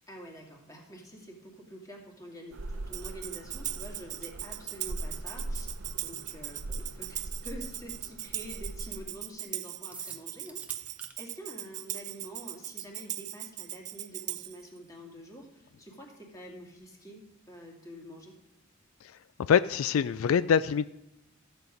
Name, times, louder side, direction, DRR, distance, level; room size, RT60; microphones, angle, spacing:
voice 1, 0.1-5.7 6.0-18.3, equal, 15° left, 0 dB, 2.2 m, -47 dB
sound 1, 2.5-9.1, right 1 dB, 65° right, 0.8 m, -41 dB
Tambourine, 2.9-14.6, right 14 dB, 35° right, 0.4 m, -39 dB
sound 2, 9.9-11.1, right 2 dB, 5° right, 1.0 m, -47 dB
voice 2, 19.0-20.9, left 7 dB, 75° left, 15 dB, 0.3 m, -25 dB
14.0 x 8.0 x 5.1 m, 0.87 s
head